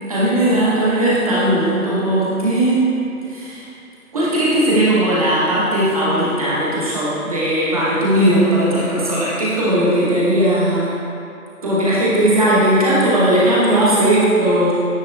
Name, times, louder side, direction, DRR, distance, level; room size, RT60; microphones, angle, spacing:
voice 1, 0.1-3.0 3.3-3.7 4.1-10.9 11.6-14.7, right 1 dB, 25° right, -8 dB, 1.1 m, -17 dB
9.7 x 3.5 x 4.0 m, 2.7 s
figure-of-eight pair, 160°, 45 cm